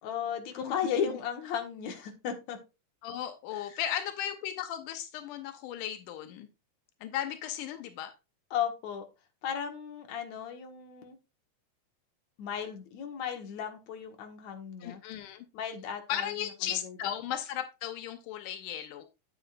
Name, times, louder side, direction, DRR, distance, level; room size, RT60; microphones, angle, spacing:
voice 1, 0.0-2.6 3.5-3.8 8.5-9.1 9.4-11.2 12.4-15.0 15.5-17.1, left 8 dB, 65° left, 2.6 m, -35 dB
voice 2, 3.0-6.5 7.0-8.1 14.8-15.5 16.1-19.0, left 11 dB, 90° left, 2.3 m, -36 dB
9.0 x 9.0 x 2.5 m
omnidirectional pair, 3.6 m